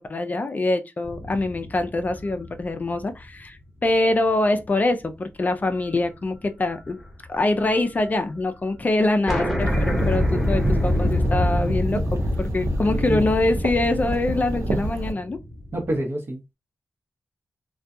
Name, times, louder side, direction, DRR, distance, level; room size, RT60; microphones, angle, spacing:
voice 1, 0.0-7.0 7.3-15.4, left 2 dB, 35° left, 0.4 m, -24 dB
sound 1, 1.0-3.7 4.1-4.2 5.7-6.1 6.3-7.8 8.1-8.2 8.4-8.5 8.8-8.9 9.3-16.0, left 1 dB, ahead, 1.0 m, -26 dB
sound 2, 9.6-15.1, right 2 dB, 90° right, 0.5 m, -30 dB
voice 2, 12.9-13.3 15.7-16.5, right 1 dB, 50° right, 0.9 m, -28 dB
2.3 x 2.2 x 2.6 m
cardioid pair, 80°, 5 cm